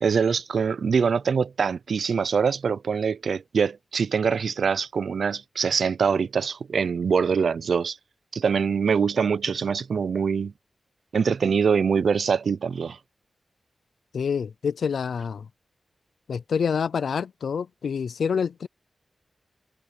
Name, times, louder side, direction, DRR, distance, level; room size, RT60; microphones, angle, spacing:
voice 1, 0.0-8.0 8.3-10.5 11.1-13.0, right 6 dB, 70° right, 0.5 m, -24 dB
voice 2, 14.1-15.5 16.3-18.7, left 6 dB, 90° left, 0.5 m, -27 dB
wide cardioid pair, 170°, 0 cm